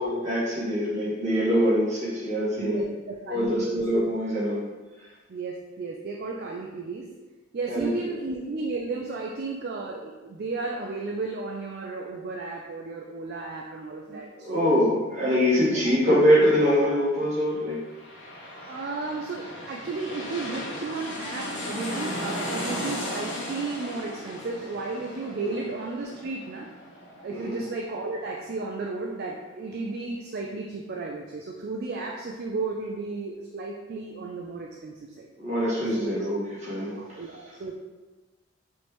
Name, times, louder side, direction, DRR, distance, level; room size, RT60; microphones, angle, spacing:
voice 1, 0.0-2.8 3.3-4.6 7.7-7.9 14.1-17.8 25.4-25.6 27.3-27.6 35.4-36.9, equal, 35° right, -8 dB, 1.5 m, -24 dB
voice 2, 2.6-3.8 5.3-7.1 7.5-14.7 15.7-15.9 18.7-26.7 27.2-35.3 35.9-36.2 36.9-37.7, right 3 dB, 50° right, -1 dB, 0.4 m, -34 dB
sound 1, 17.6-28.9 29.3-29.4, left 1 dB, 65° left, 1.1 m, -36 dB
4.4 x 3.2 x 3.0 m, 1.2 s
head